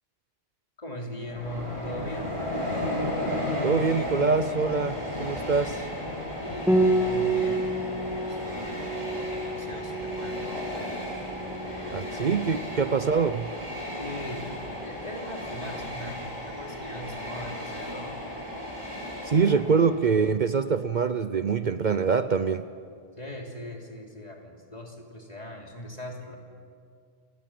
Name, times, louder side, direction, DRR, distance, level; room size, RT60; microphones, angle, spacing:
voice 1, 0.8-2.4 6.4-10.6 11.6-12.2 14.0-14.5 14.8-18.2 19.5-19.6 23.2-26.4, equal, 40° left, 0 dB, 3.4 m, -40 dB
Train, 1.2-20.1, left 1 dB, 30° right, 5.6 m, -34 dB
voice 2, 3.6-5.9 11.9-13.5 19.2-22.7, right 5 dB, 50° right, 11 dB, 0.8 m, -24 dB
Piano, 6.7-16.0, right 1 dB, ahead, 2.0 m, -30 dB
28.0 x 20.0 x 7.7 m, 2.3 s
omnidirectional pair, 1.1 m